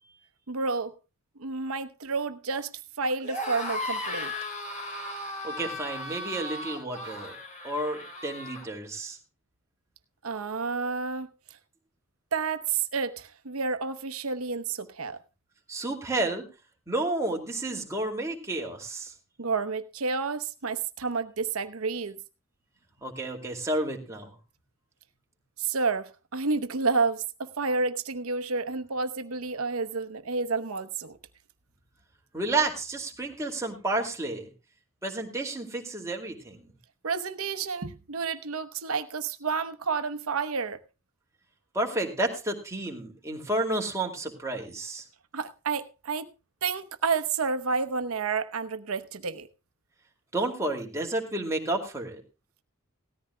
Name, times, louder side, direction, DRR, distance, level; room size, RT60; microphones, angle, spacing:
voice 1, 0.5-0.9 1.4-2.7 3.0-4.3 10.2-11.3 12.3-15.2 19.4-22.2 25.6-31.2 37.0-40.8 45.3-46.3 46.6-49.5, right 4 dB, 75° right, 0.9 m, -30 dB
sound 1, 3.2-8.7, left 1 dB, 35° left, 3.4 m, -36 dB
voice 2, 5.4-7.3 7.6-9.2 15.7-16.5 16.9-19.1 23.0-24.3 32.3-34.5 35.0-36.7 41.7-45.0 50.3-52.2, right 2 dB, 15° right, 2.4 m, -31 dB
18.0 x 14.0 x 2.2 m
head